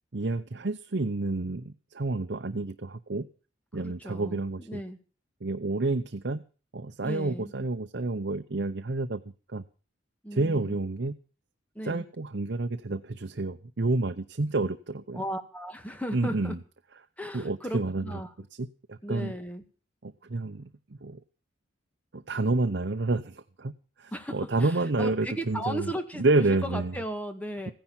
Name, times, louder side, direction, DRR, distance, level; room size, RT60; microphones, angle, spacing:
voice 1, 0.1-3.3 3.7-4.8 5.4-6.4 6.7-9.2 9.5-9.6 10.3-11.1 11.8-15.2 16.1-16.6 17.3-18.0 18.6-19.3 20.0-21.2 22.1-23.7 24.0-25.9 26.2-26.9, right 2 dB, 60° right, 8 dB, 0.8 m, -29 dB
voice 2, 3.7-5.0 7.0-7.5 10.2-10.8 11.8-12.1 15.1-16.6 17.2-18.3 19.0-19.6 24.1-27.7, equal, 10° left, 7 dB, 1.9 m, -36 dB
15.5 x 10.5 x 7.3 m, 0.37 s
head